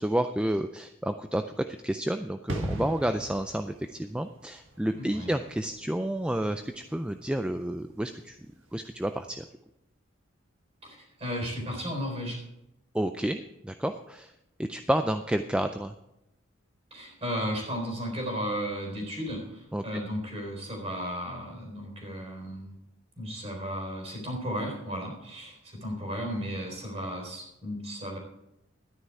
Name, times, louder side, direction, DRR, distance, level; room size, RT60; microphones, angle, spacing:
voice 1, 0.0-1.4 1.7-8.4 8.7-9.5 12.9-14.3 14.7-15.9 19.7-20.0, right 1 dB, 5° right, 8 dB, 0.3 m, -30 dB
sound 1, 2.5-9.0 9.2-9.4, right 1 dB, 75° right, 1.7 m, -40 dB
voice 2, 4.9-5.3 10.8-12.4 16.9-22.8 23.2-28.2, equal, 30° right, 1 dB, 3.9 m, -34 dB
12.5 x 9.8 x 4.8 m, 0.86 s
head